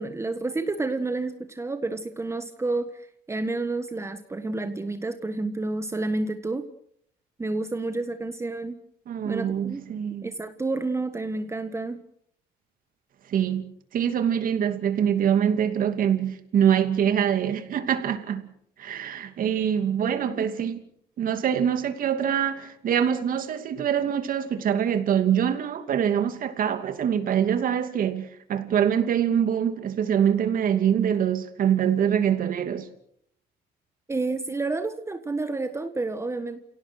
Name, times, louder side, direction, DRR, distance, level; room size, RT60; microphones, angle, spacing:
voice 1, 0.0-6.6 7.4-8.8 9.2-9.8 10.2-12.0 20.0-20.5 34.1-36.6, right 3 dB, 15° right, 1.5 m, -30 dB
voice 2, 9.1-10.3 13.3-18.5 18.8-20.8 21.2-32.9, right 9 dB, 55° right, 2.7 m, -24 dB
30.0 x 17.5 x 6.4 m
cardioid pair, 110°, 17 cm